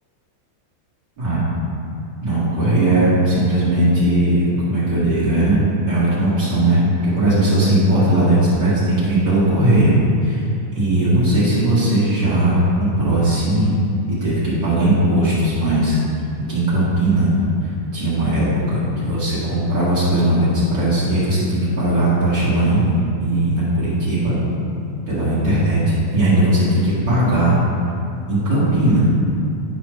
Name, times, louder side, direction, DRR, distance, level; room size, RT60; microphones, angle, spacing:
voice 1, 2.2-10.0 10.2-10.4 10.7-13.7 14.1-16.0 16.5-17.3 17.6-22.9 23.2-24.3 25.1-27.6 28.3-29.1, right 1 dB, 55° right, -11 dB, 1.2 m, -18 dB
11.5 x 5.2 x 3.2 m, 2.6 s
omnidirectional pair, 4.9 m